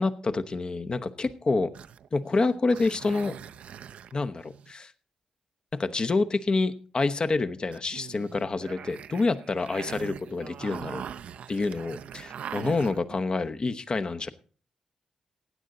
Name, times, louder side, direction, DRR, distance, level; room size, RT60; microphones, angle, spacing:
voice 1, 0.0-1.7 2.1-3.4 4.1-4.9 5.7-11.0 11.5-14.3, left 3 dB, 40° left, 10 dB, 0.9 m, -27 dB
sound 1, 1.7-4.7 7.7-13.2, right 8 dB, 70° right, 0.5 m, -42 dB
15.5 x 9.4 x 3.9 m, 0.39 s
supercardioid pair, 50°, 2 cm